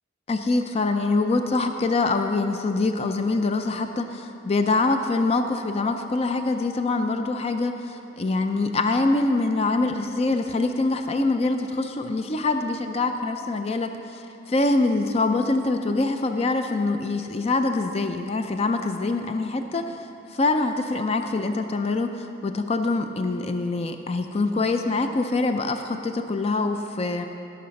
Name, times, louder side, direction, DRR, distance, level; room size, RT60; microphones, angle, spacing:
voice 1, 0.3-27.3, left 3 dB, 30° left, 7 dB, 0.4 m, -24 dB
17.0 x 6.6 x 5.3 m, 2.9 s
head